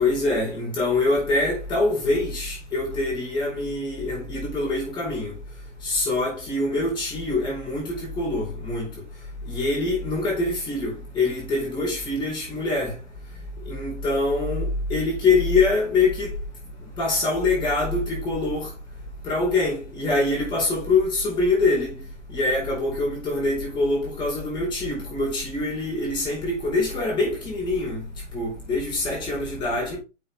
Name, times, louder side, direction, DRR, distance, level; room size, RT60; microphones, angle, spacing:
voice 1, 0.0-5.3 5.8-8.9 9.5-12.9 13.7-16.3 17.0-18.7 19.2-21.9 22.3-28.0 28.3-30.0, left 2 dB, 10° left, 4.5 m, -24 dB
7.8 x 5.1 x 3.5 m
hypercardioid pair, 140°, 39 cm